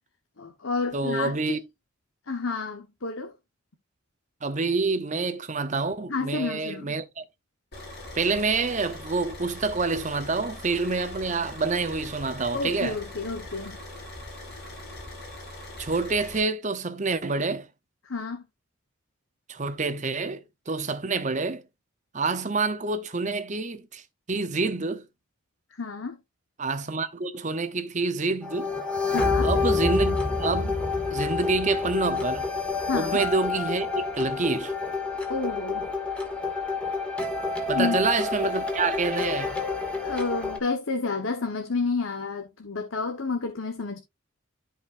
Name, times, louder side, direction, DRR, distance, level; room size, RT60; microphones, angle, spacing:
voice 1, 0.4-1.3 2.3-3.3 6.1-7.0 12.5-13.8 18.0-18.4 25.7-26.2 29.1-29.5 32.8-33.2 35.3-35.9 37.7-38.0 40.0-44.0, left 4 dB, 70° left, 1.3 m, -30 dB
voice 2, 0.9-1.6 4.4-7.2 8.1-13.0 15.8-17.7 19.5-21.6 22.1-24.0 24.3-25.1 26.6-28.7 29.4-32.4 32.9-34.7 37.7-39.6, right 3 dB, 35° right, 0.9 m, -27 dB
Car / Idling, 7.7-16.4, left 1 dB, 50° left, 6.6 m, -41 dB
sound 1, 28.4-40.6, left 3 dB, 5° left, 1.9 m, -28 dB
13.5 x 5.2 x 2.6 m
head